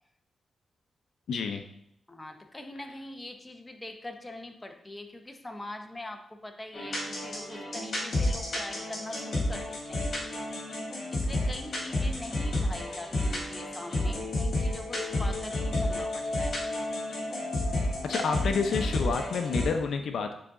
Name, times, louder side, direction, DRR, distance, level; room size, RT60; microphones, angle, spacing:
voice 1, 1.3-1.6 18.0-20.3, left 5 dB, 75° left, 6 dB, 0.6 m, -29 dB
voice 2, 2.1-10.1 11.1-16.6, left 1 dB, 15° left, 5 dB, 0.8 m, -43 dB
sound 1, 6.7-19.7, left 1 dB, 50° left, 2.4 m, -31 dB
9.3 x 4.0 x 3.7 m, 0.75 s
cardioid pair, 95°, 0 cm